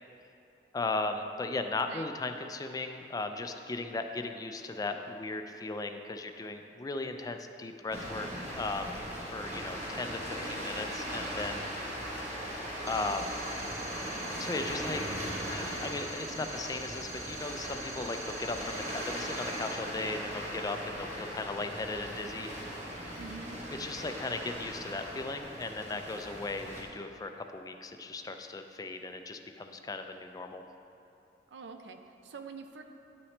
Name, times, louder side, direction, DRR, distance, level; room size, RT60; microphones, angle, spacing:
voice 1, 0.7-9.0 9.3-11.9 12.9-13.4 14.4-22.5 23.8-30.6, left 3 dB, 20° left, 6 dB, 0.3 m, -37 dB
sound 1, 7.9-26.8, equal, 40° right, 1.2 m, -39 dB
sound 2, 12.9-19.7, right 2 dB, 15° right, 1.0 m, -46 dB
voice 2, 23.2-23.6 31.5-32.8, right 4 dB, 90° right, 6 dB, 0.5 m, -45 dB
10.5 x 5.7 x 3.2 m, 2.9 s
head